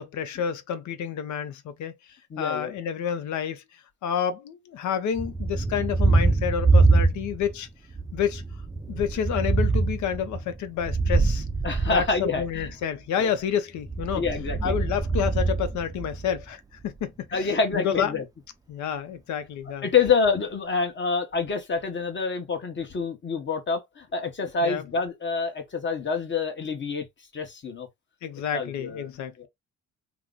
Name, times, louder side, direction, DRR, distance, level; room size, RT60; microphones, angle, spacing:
voice 1, 0.0-1.9 2.4-3.6 4.0-7.7 8.1-8.4 8.9-11.4 11.9-14.2 14.6-18.2 18.7-19.8 24.6-24.8 28.2-29.3, left 8 dB, 70° left, 0.7 m, -29 dB
voice 2, 2.3-2.7 11.6-12.7 13.2-13.3 14.1-14.7 17.3-18.2 19.8-27.0 27.3-27.9 28.5-29.1 29.4-29.5, left 5 dB, 40° left, 1.1 m, -27 dB
Thunder, 5.2-7.6 7.9-12.7 13.8-16.4, right 3 dB, 10° right, 0.4 m, -24 dB
3.0 x 2.0 x 3.8 m
cardioid pair, 90°, 30 cm